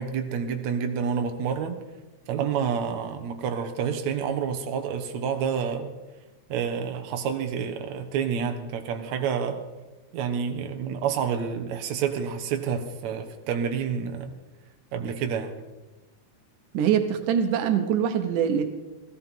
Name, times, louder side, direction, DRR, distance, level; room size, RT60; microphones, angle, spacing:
voice 1, 0.0-1.8 2.3-5.9 6.5-9.6 10.1-14.3 14.9-15.5, right 7 dB, 70° right, 6 dB, 2.3 m, -28 dB
voice 2, 16.7-18.7, right 8 dB, 90° right, 7 dB, 2.6 m, -23 dB
18.0 x 14.5 x 4.5 m, 1.1 s
omnidirectional pair, 3.5 m